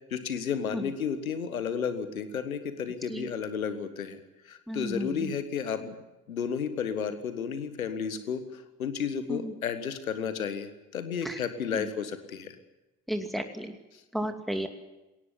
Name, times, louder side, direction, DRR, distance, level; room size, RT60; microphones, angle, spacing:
voice 1, 0.1-4.2 4.5-6.0 6.3-12.6, left 7 dB, 85° left, 11 dB, 1.7 m, -32 dB
voice 2, 4.7-5.3 9.3-9.5 11.2-11.4 11.7-11.9 13.1-13.7 14.1-14.7, equal, ahead, 6 dB, 2.6 m, -33 dB
21.0 x 17.5 x 9.9 m, 1.0 s
figure-of-eight pair, 45°, 41 cm